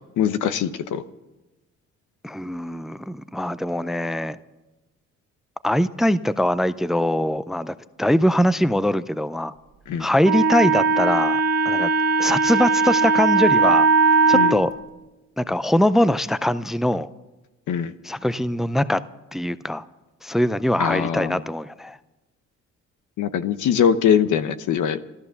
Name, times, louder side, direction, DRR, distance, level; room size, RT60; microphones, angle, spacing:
voice 1, 0.2-1.0 9.9-10.1 14.3-14.5 17.7-17.9 20.8-21.4 23.2-25.0, left 8 dB, 80° left, 12 dB, 0.9 m, -22 dB
voice 2, 2.2-4.4 5.6-9.5 10.0-11.4 11.7-11.9 12.2-13.9 14.3-14.7 15.4-17.1 18.0-19.0 19.3-19.9 20.2-22.0, left 1 dB, ahead, 15 dB, 0.5 m, -22 dB
Wind instrument woodwind instrument, 10.2-14.6, right 4 dB, 60° right, 2.2 m, -19 dB
14.0 x 13.0 x 6.9 m, 1.1 s
cardioid pair, 90°, 30 cm